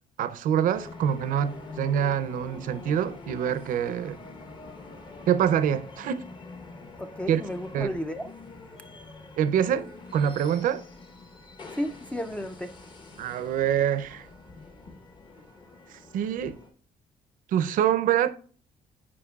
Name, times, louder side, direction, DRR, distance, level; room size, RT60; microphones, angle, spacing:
voice 1, 0.2-4.2 5.3-6.2 7.3-7.4 7.7-7.9 9.4-10.8 13.2-14.3 15.9-16.6 17.5-18.3, right 9 dB, 75° right, 0.5 m, -25 dB
sound 1, 0.7-16.7, left 3 dB, 35° left, 0.9 m, -45 dB
voice 2, 7.0-8.3 11.7-12.7, equal, 10° left, 0.3 m, -33 dB
8.5 x 4.9 x 2.3 m
cardioid pair, 140°, 14 cm